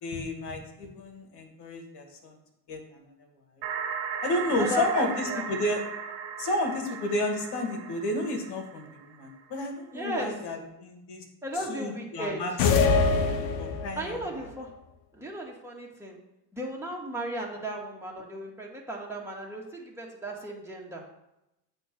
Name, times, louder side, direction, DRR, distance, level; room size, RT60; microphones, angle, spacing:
voice 1, 0.0-2.3 2.7-3.1 4.2-5.8 6.4-11.2 11.7-12.7 13.6-14.2, left 1 dB, 55° left, 4 dB, 1.9 m, -31 dB
sound 1, 3.6-9.3, right 7 dB, 60° right, 1.2 m, -37 dB
voice 2, 4.5-5.4 9.9-10.3 11.4-12.6 14.0-14.7 15.1-16.2 16.5-21.0, right 1 dB, 5° right, -3 dB, 2.2 m, -35 dB
sound 2, 12.6-14.1, left 4 dB, 75° left, 1.0 m, -23 dB
8.1 x 3.4 x 6.2 m, 0.88 s
hypercardioid pair, 70°, 48 cm